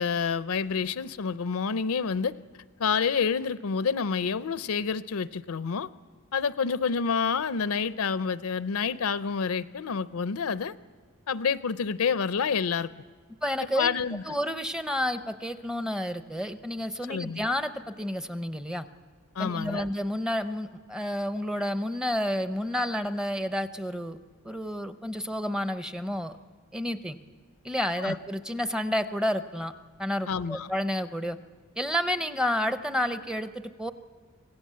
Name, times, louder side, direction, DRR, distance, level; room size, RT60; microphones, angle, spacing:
voice 1, 0.0-2.3 2.8-5.9 6.3-10.7 11.3-12.9 13.8-14.2 17.1-17.4 19.4-19.9 28.0-28.2 30.3-30.7, left 6 dB, 75° left, 15 dB, 0.5 m, -28 dB
voice 2, 13.4-13.9 14.3-18.9 19.4-24.2 24.4-26.3 26.7-27.2 27.6-29.7 30.0-31.4 31.8-33.9, equal, 5° right, 10 dB, 0.6 m, -30 dB
25.5 x 17.0 x 7.5 m, 1.5 s
head